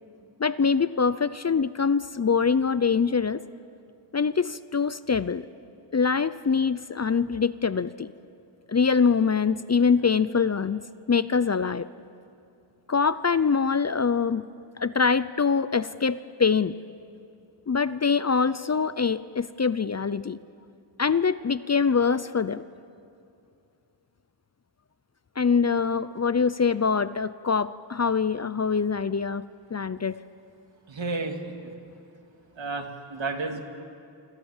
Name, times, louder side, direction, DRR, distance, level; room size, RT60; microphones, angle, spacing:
voice 1, 0.4-3.4 4.1-5.5 5.9-8.1 8.7-10.8 11.1-11.9 12.9-14.4 14.8-16.7 17.7-20.4 21.0-22.6 25.4-29.4 29.7-30.2, left 5 dB, 35° left, 15 dB, 0.6 m, -24 dB
voice 2, 30.9-31.4 31.6-31.7 32.6-33.6, right 3 dB, 65° right, 4 dB, 2.7 m, -31 dB
28.5 x 26.0 x 7.3 m, 2.5 s
wide cardioid pair, 90°, 48 cm